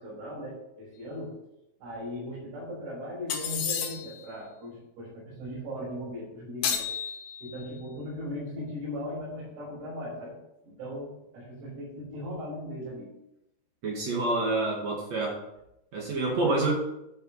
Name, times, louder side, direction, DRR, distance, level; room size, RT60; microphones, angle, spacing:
voice 1, 0.0-1.4 1.8-6.8 7.4-10.4 10.6-13.1 16.2-16.7, equal, 90° right, -9 dB, 6.6 m, -38 dB
sound 1, 3.3-4.2 6.6-7.7, left 7 dB, 85° left, 3.5 m, -32 dB
voice 2, 13.8-15.4 15.9-16.7, right 2 dB, 50° right, -2 dB, 2.3 m, -27 dB
12.0 x 5.7 x 5.6 m, 0.87 s
omnidirectional pair, 4.9 m